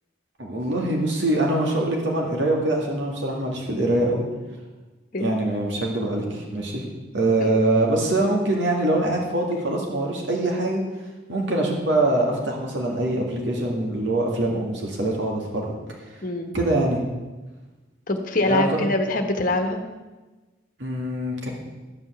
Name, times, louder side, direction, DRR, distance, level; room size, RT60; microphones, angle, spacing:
voice 1, 0.4-4.3 5.2-6.8 7.1-10.8 11.3-15.7 16.5-17.0 18.4-18.8 20.8-21.3, right 2 dB, 65° right, -1 dB, 2.1 m, -23 dB
voice 2, 16.2-16.5 18.1-19.8, left 2 dB, 45° left, 4 dB, 1.3 m, -24 dB
13.0 x 5.4 x 8.0 m, 1.2 s
head